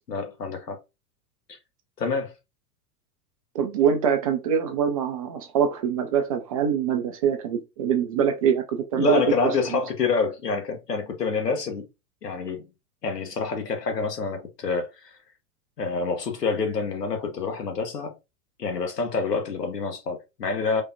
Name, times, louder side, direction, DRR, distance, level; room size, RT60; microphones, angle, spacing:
voice 1, 0.1-0.8 2.0-2.3 8.9-11.9 12.2-12.7 13.0-14.9 15.8-18.1 18.6-20.8, left 4 dB, 80° left, 1.2 m, -27 dB
voice 2, 3.5-9.2 9.7-9.8, right 7 dB, 25° right, 0.3 m, -24 dB
5.0 x 2.2 x 2.6 m
figure-of-eight pair, 90°, 48 cm